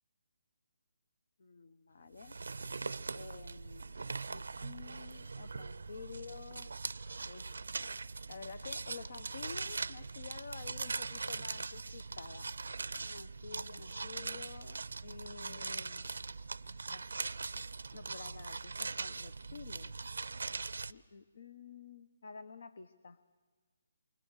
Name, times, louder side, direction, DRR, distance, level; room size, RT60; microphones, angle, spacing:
voice 1, 1.4-2.4 3.1-6.7 7.2-7.5 8.3-12.5 13.0-16.2 16.7-17.2 17.9-20.1 20.9-23.2, left 5 dB, 55° left, 14 dB, 1.1 m, -50 dB
sound 1, 2.2-20.9, right 4 dB, 90° right, 0.7 m, -41 dB
28.5 x 24.5 x 6.5 m, 1.4 s
hypercardioid pair, 170°, 0 cm